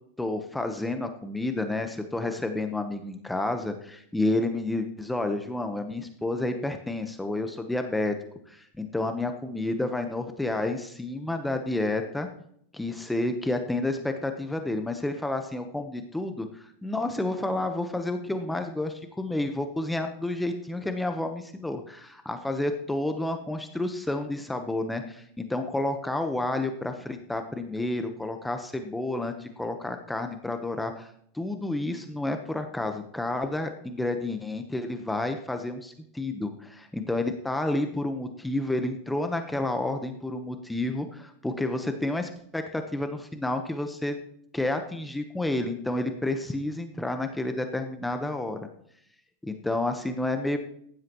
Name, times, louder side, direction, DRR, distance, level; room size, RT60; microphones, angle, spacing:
voice 1, 0.2-8.1 8.5-12.3 12.7-44.2 44.5-48.7 49.4-50.6, left 2 dB, 5° left, 6 dB, 1.1 m, -30 dB
15.5 x 11.0 x 3.1 m, 0.68 s
hypercardioid pair, 110°, 0 cm